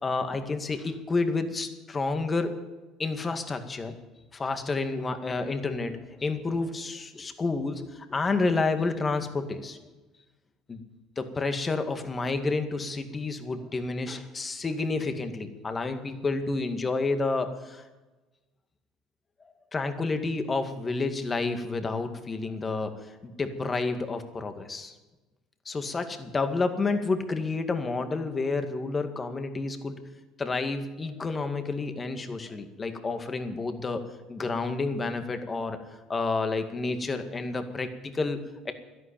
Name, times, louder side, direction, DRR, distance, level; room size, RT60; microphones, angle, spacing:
voice 1, 0.0-2.6 3.0-4.0 4.3-9.8 10.7-10.8 11.2-17.8 19.7-24.9 25.7-30.1 30.4-35.8 36.1-38.7, left 3 dB, 30° left, 7 dB, 2.1 m, -30 dB
12.5 x 11.0 x 8.7 m, 1.1 s
hypercardioid pair, 70°, 0 cm